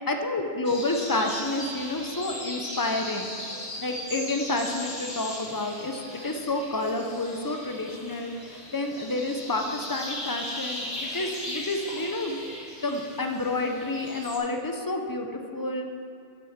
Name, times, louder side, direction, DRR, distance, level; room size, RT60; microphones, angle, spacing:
voice 1, 0.0-3.3 3.8-12.4 12.8-15.9, left 2 dB, 30° left, 4 dB, 0.3 m, -29 dB
sound 1, 0.6-14.4, left 1 dB, 85° left, 2.8 m, -38 dB
8.9 x 6.2 x 7.2 m, 2.5 s
omnidirectional pair, 1.4 m